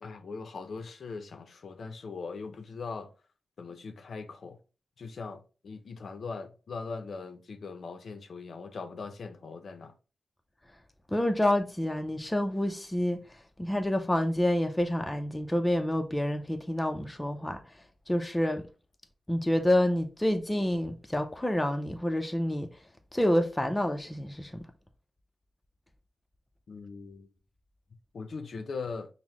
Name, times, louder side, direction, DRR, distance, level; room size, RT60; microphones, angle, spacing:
voice 1, 0.0-3.1 3.6-4.6 5.0-9.9 26.7-27.3 28.1-29.1, left 4 dB, 70° left, 0.5 m, -40 dB
voice 2, 11.1-13.2 13.6-17.6 18.1-18.6 19.3-22.7 23.1-24.5, left 1 dB, 10° left, 0.4 m, -28 dB
5.5 x 2.0 x 3.0 m
wide cardioid pair, 140°, 0 cm